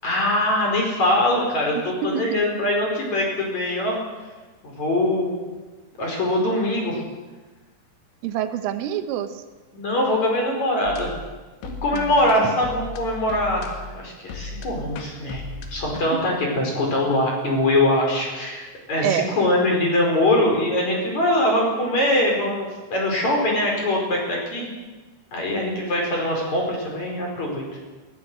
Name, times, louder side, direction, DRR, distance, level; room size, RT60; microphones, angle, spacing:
voice 1, 0.0-4.0 4.6-5.3 6.0-7.0 9.7-11.1 11.6-15.4 15.7-24.7 25.3-27.6, left 1 dB, 35° left, 0 dB, 5.8 m, -22 dB
voice 2, 1.8-2.4 8.2-9.4 11.9-12.1 12.5-12.6 16.1-16.2 19.0-19.4, right 10 dB, 85° right, 8 dB, 3.8 m, -27 dB
sound 1, 10.9-16.0, left 3 dB, 75° left, 4.2 m, -37 dB
21.5 x 18.0 x 8.0 m, 1.3 s
omnidirectional pair, 5.6 m